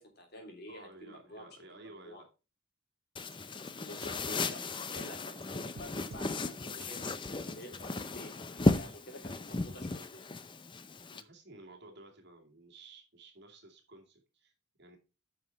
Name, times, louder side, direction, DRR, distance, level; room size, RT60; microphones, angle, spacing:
voice 1, 0.0-2.2 3.8-8.4 8.6-10.2, left 1 dB, 50° left, 2 dB, 3.1 m, -49 dB
voice 2, 0.7-2.3 11.1-14.5 14.8-15.0, right 2 dB, 50° right, 2 dB, 2.4 m, -54 dB
sound 1, 3.2-11.2, left 2 dB, 25° left, 0.5 m, -35 dB
sound 2, 3.3-3.4 3.7-3.8 4.0-4.1 4.7-5.5 5.8-6.3 6.8-6.9 7.5-8.0, right 4 dB, 70° right, 0.8 m, -52 dB
9.5 x 5.8 x 4.5 m, 0.31 s
head